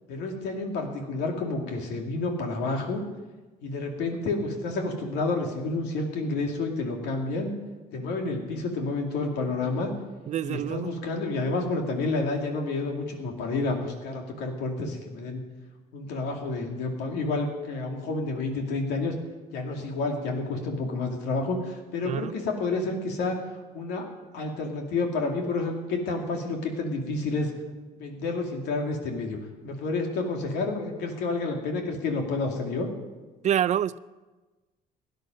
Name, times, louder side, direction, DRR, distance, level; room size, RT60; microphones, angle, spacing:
voice 1, 0.1-3.0 3.6-7.5 7.9-9.9 10.4-15.4 15.9-19.1 19.5-23.4 23.7-24.0 24.3-27.5 27.9-29.4 29.6-32.9, left 3 dB, 85° left, 2.4 m, -29 dB
voice 2, 10.3-10.9 22.0-22.3 33.4-34.0, right 10 dB, 45° right, 0.4 m, -27 dB
16.5 x 10.5 x 5.3 m
cardioid pair, 110°, 17 cm